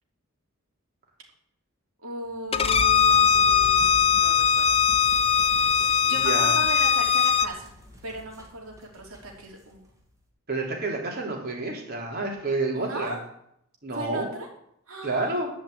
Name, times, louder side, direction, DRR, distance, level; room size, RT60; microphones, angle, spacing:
voice 1, 2.0-4.8 5.8-7.7 8.0-9.8 12.7-13.2 13.9-14.5 14.9-15.4, right 1 dB, 80° right, 0 dB, 3.4 m, -37 dB
Bowed string instrument, 2.5-7.5, left 7 dB, 25° left, 0.6 m, -20 dB
sound 1, 2.5-10.1, left 1 dB, 15° right, 2.7 m, -41 dB
voice 2, 6.0-6.5 10.5-13.2 13.8-14.3 15.0-15.5, right 2 dB, 50° right, -1 dB, 3.6 m, -29 dB
12.0 x 5.4 x 8.6 m, 0.75 s
head